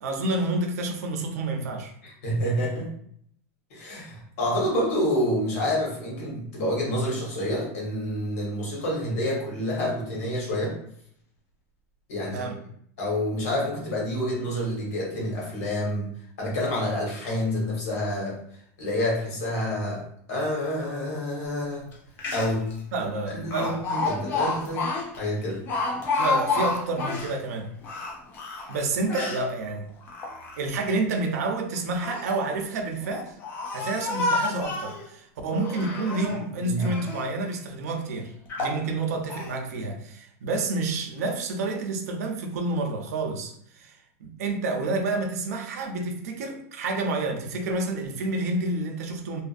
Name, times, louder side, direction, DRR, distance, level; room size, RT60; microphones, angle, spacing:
voice 1, 0.0-1.9 12.2-12.5 22.9-23.8 26.2-27.7 28.7-29.9 30.6-33.3 33.7-43.9 44.2-49.4, right 2 dB, 85° right, 3 dB, 0.6 m, -29 dB
voice 2, 2.0-2.9 3.7-10.7 12.1-12.5 13.0-16.1 16.4-18.4 18.8-20.0 20.3-21.9 22.3-22.6 23.0-23.1 23.4-24.9 25.2-25.6 36.6-36.9, equal, 70° left, -2 dB, 1.3 m, -28 dB
Speech, 21.9-22.0 22.2-22.7 23.5-27.3 27.8-29.4 30.0-30.8 31.7-32.3 33.0-35.0 35.6-36.4 36.8-37.3 37.9-38.0 38.5-38.8 39.3-39.5, left 3 dB, 25° left, 0.4 m, -30 dB
2.6 x 2.4 x 2.5 m, 0.67 s
supercardioid pair, 170°, 8 cm